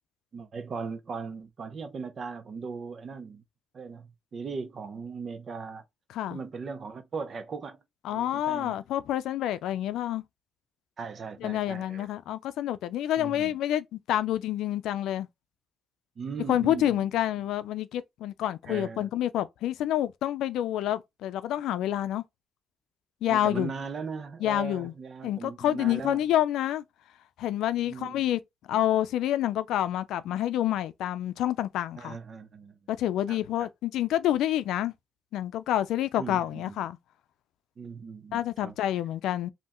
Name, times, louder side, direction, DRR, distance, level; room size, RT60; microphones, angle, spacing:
voice 1, 0.3-3.4 3.7-5.8 6.3-7.8 8.1-8.8 11.0-12.1 13.2-13.6 16.2-17.1 18.7-19.1 23.3-26.3 27.9-28.3 31.9-32.8 33.3-33.4 36.2-36.8 37.8-38.7, right 5 dB, 50° right, 0.8 m, -38 dB
voice 2, 8.0-10.2 11.4-15.3 16.5-22.2 23.2-23.7 24.4-24.9 25.2-26.8 27.4-28.4 28.7-32.2 32.9-34.9 35.3-37.0 38.3-39.5, left 12 dB, 85° left, 0.5 m, -28 dB
5.4 x 2.8 x 3.0 m
cardioid pair, 90°, 0 cm